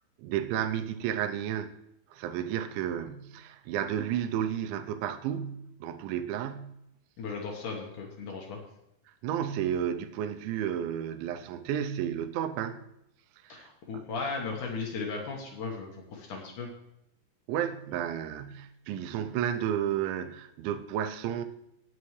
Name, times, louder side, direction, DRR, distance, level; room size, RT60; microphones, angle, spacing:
voice 1, 0.2-1.7 2.1-6.7 9.2-12.8 13.4-13.7 13.9-14.0 17.5-21.4, right 9 dB, 80° right, 2.9 m, -32 dB
voice 2, 7.2-8.6 13.5-16.7, left 4 dB, 65° left, 2.1 m, -36 dB
18.5 x 7.1 x 3.2 m
omnidirectional pair, 5.4 m